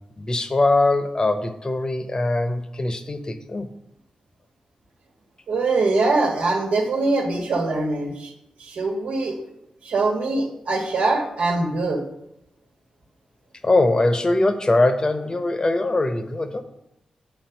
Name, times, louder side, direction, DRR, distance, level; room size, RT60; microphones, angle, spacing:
voice 1, 0.2-3.7 13.6-16.6, left 2 dB, 35° left, 9 dB, 0.9 m, -21 dB
voice 2, 5.5-8.3 8.6-9.4 9.8-12.0, right 3 dB, 85° right, 1 dB, 1.4 m, -23 dB
7.3 x 4.4 x 5.8 m, 0.83 s
cardioid pair, 50°, 2 cm